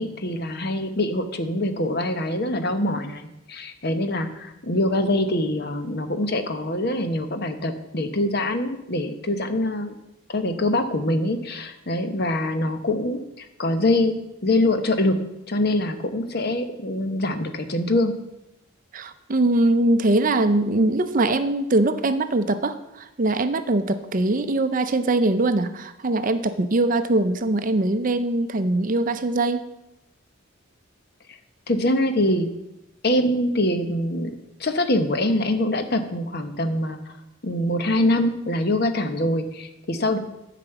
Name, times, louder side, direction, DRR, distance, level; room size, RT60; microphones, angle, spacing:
voice 1, 0.0-10.0 10.3-14.2 14.4-18.1 31.7-32.5 33.0-34.3 34.6-37.1 37.4-40.2, left 1 dB, 45° left, 8 dB, 0.9 m, -24 dB
voice 2, 18.9-29.7, right 2 dB, 40° right, 10 dB, 0.5 m, -22 dB
9.3 x 5.1 x 7.9 m, 0.91 s
head